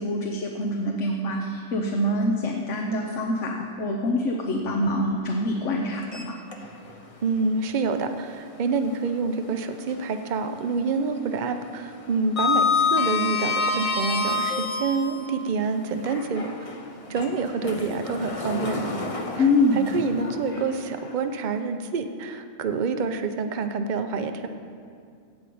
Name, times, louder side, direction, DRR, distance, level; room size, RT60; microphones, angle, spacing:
voice 1, 0.0-6.4 19.4-19.8, left 1 dB, 60° left, 2 dB, 1.2 m, -25 dB
Sliding door, 6.0-7.0 7.4-7.5 9.2-10.3 10.5-10.9 11.2-15.3 15.9-21.1, left 4 dB, 30° left, 0.9 m, -28 dB
voice 2, 7.2-16.5 17.1-18.9 19.3-19.5 19.7-24.5, right 4 dB, 45° right, 8 dB, 0.7 m, -27 dB
16.0 x 5.3 x 8.6 m, 2.3 s
omnidirectional pair, 1.4 m